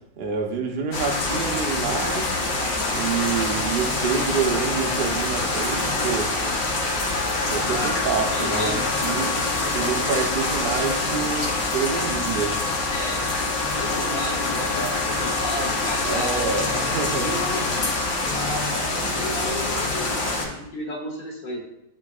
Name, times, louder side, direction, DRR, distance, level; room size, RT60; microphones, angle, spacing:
voice 1, 0.2-2.3 2.9-6.3 7.5-9.3 9.7-12.6 16.0-17.3, right 5 dB, 65° right, 2 dB, 0.5 m, -27 dB
sound 1, 0.9-20.5, left 2 dB, 65° left, 1.8 m, -25 dB
Wind instrument woodwind instrument, 7.1-18.4, left 8 dB, 80° left, 1.4 m, -34 dB
voice 2, 8.3-8.7 12.9-13.3 13.6-17.7 18.2-21.6, equal, 25° left, -5 dB, 1.7 m, -33 dB
10.0 x 4.5 x 2.4 m, 0.82 s
omnidirectional pair, 2.1 m